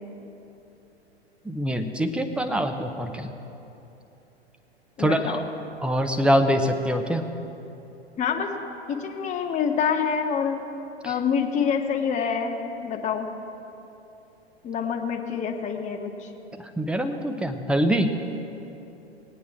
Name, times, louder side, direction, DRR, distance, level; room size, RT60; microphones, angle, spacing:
voice 1, 1.4-3.3 5.0-5.4 5.8-7.2 11.0-11.1 16.6-18.1, equal, 5° right, 6 dB, 0.5 m, -24 dB
voice 2, 5.0-5.4 8.2-8.5 8.9-10.6 11.0-13.3 14.6-16.3, left 6 dB, 20° left, 2 dB, 1.0 m, -26 dB
19.0 x 9.3 x 3.5 m, 2.9 s
figure-of-eight pair, 100°, 32 cm